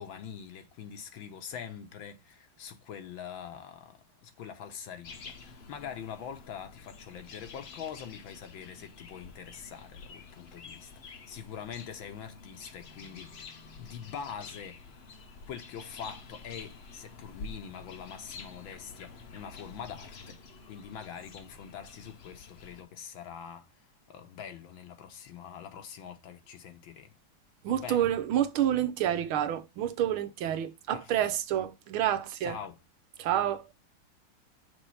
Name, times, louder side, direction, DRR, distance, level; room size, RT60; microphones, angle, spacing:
voice 1, 0.0-13.5 13.8-14.8 15.5-20.4 20.7-23.8 24.1-27.1 27.7-28.1 30.9-31.3 32.4-32.8, left 8 dB, 75° left, 1.6 m, -44 dB
sound 1, 5.0-22.8, left 4 dB, 60° left, 0.6 m, -49 dB
voice 2, 27.6-32.6 33.2-33.6, right 11 dB, 85° right, 1.7 m, -28 dB
6.2 x 3.6 x 5.4 m
omnidirectional pair, 2.2 m